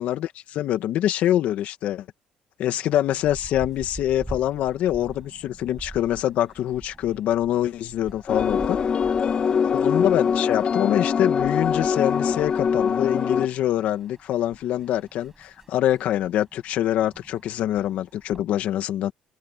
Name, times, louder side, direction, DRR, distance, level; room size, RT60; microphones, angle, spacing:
voice 1, 0.0-2.1 2.6-8.8 9.7-19.1, left 12 dB, 70° left, 1.9 m, -25 dB
sound 1, 2.8-18.4, right 2 dB, 10° right, 6.8 m, -45 dB
sound 2, 8.3-13.5, left 6 dB, 45° left, 2.1 m, -23 dB
open air
cardioid pair, 90°, 3 cm